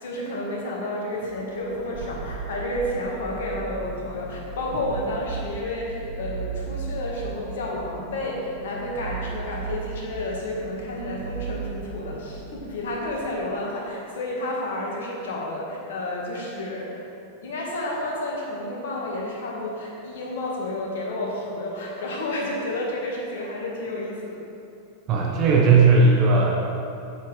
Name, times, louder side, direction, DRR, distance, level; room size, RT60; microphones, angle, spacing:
voice 1, 0.0-17.0 17.4-24.4, left 1 dB, 60° left, -3 dB, 1.6 m, -31 dB
sound 1, 1.2-13.3, right 5 dB, 65° right, 0.8 m, -36 dB
voice 2, 25.1-26.5, right 4 dB, 35° right, -2 dB, 1.1 m, -17 dB
7.9 x 7.3 x 3.3 m, 2.7 s
figure-of-eight pair, 90°, 0 cm